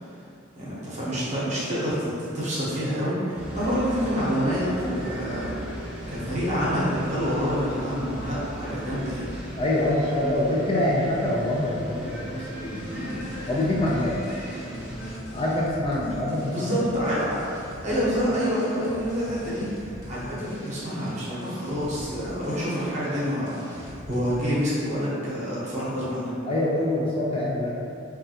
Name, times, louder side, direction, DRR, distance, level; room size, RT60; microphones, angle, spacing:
voice 1, 0.6-5.7 6.1-9.3 12.8-13.3 15.8-16.1 16.5-26.3, equal, 35° right, -8 dB, 0.8 m, -27 dB
sound 1, 3.4-15.1, right 1 dB, 5° right, 0.7 m, -37 dB
voice 2, 9.6-12.3 12.6-13.0 13.5-14.2 15.3-16.8 26.5-27.8, left 1 dB, 30° left, -4 dB, 0.3 m, -25 dB
sound 2, 12.9-24.4, equal, 55° left, 0.8 m, -42 dB
3.2 x 2.4 x 2.7 m, 2.6 s
head